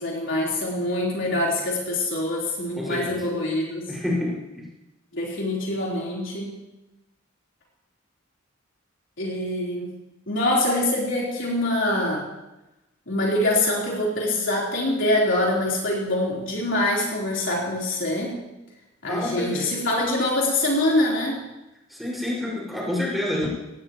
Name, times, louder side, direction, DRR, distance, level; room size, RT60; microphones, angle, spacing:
voice 1, 0.0-3.8 5.1-6.6 9.2-9.9 10.3-12.3 13.1-18.4 19.0-21.4, left 1 dB, 65° left, -4 dB, 4.0 m, -24 dB
voice 2, 2.7-3.2 3.9-4.4 19.1-19.7 21.9-23.5, left 1 dB, ahead, -6 dB, 5.8 m, -28 dB
18.5 x 17.5 x 3.1 m, 1.0 s
head